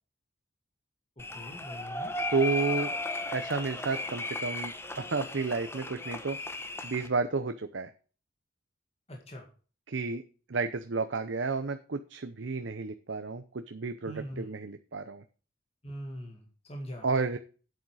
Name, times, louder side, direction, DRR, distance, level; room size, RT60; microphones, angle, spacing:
voice 1, 1.2-2.2 9.1-9.4 14.0-14.5 15.8-17.1, equal, 30° left, 1 dB, 2.0 m, -42 dB
sound 1, 1.2-7.1, left 2 dB, 10° left, 0.9 m, -36 dB
voice 2, 2.3-2.9 3.3-6.4 6.8-7.9 9.9-10.2 10.5-15.2 17.0-17.4, right 4 dB, 65° right, 9 dB, 0.7 m, -31 dB
8.6 x 8.1 x 4.8 m, 0.38 s
head